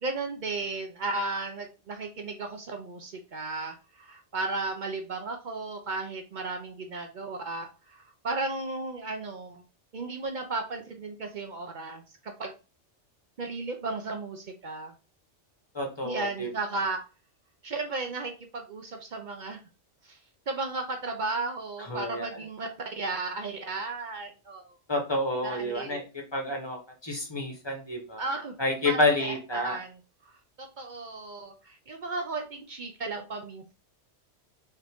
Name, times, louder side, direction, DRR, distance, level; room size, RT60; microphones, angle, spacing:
voice 1, 0.0-9.6 9.9-12.6 13.4-14.9 16.0-17.0 17.6-19.6 20.0-20.2 20.5-24.8 25.4-26.0 28.2-28.5 28.8-29.0 29.3-30.3 30.6-33.7, right 3 dB, 50° right, 4 dB, 0.6 m, -35 dB
voice 2, 15.7-16.5 21.9-22.2 24.9-26.0 26.3-28.2 28.6-29.8, left 1 dB, 25° left, 2 dB, 0.8 m, -29 dB
4.2 x 2.6 x 3.4 m, 0.32 s
omnidirectional pair, 1.2 m